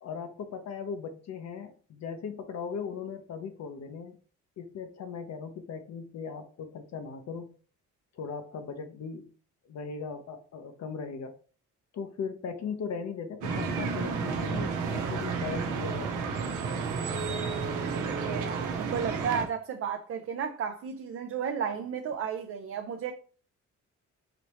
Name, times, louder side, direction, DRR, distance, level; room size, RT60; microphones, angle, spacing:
voice 1, 0.0-4.2 4.6-7.5 8.1-9.3 9.7-11.4 11.9-16.4, left 6 dB, 60° left, 0.8 m, -38 dB
sound 1, 13.4-19.4, right 5 dB, 85° right, 0.9 m, -31 dB
voice 2, 18.0-23.1, right 7 dB, 50° right, 0.6 m, -33 dB
5.1 x 2.8 x 3.1 m
cardioid pair, 90°, 30 cm